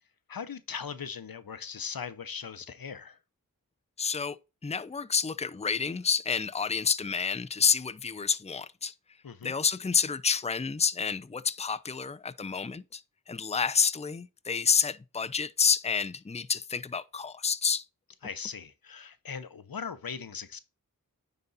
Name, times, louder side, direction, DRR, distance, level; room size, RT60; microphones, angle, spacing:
voice 1, 0.3-3.2 9.2-9.5 18.2-20.6, left 6 dB, 80° left, 0.8 m, -39 dB
voice 2, 4.0-4.4 4.6-8.9 9.4-17.9, left 6 dB, 20° left, 0.5 m, -29 dB
9.6 x 4.1 x 4.0 m
wide cardioid pair, 40°, 34 cm